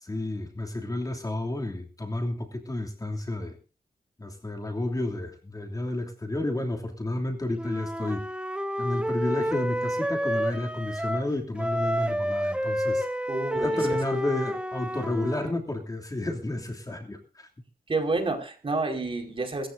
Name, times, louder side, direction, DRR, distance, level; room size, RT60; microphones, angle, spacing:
voice 1, 0.0-3.5 4.2-8.3 8.8-13.1 13.5-17.5, left 1 dB, 25° left, 1 dB, 2.8 m, -31 dB
Wind instrument woodwind instrument, 7.6-11.3 11.6-15.5, equal, 5° right, 1.4 m, -29 dB
voice 2, 13.3-14.0 17.9-19.7, right 3 dB, 35° right, 3 dB, 4.8 m, -29 dB
25.0 x 14.5 x 2.7 m, 0.35 s
wide cardioid pair, 100°, 15 cm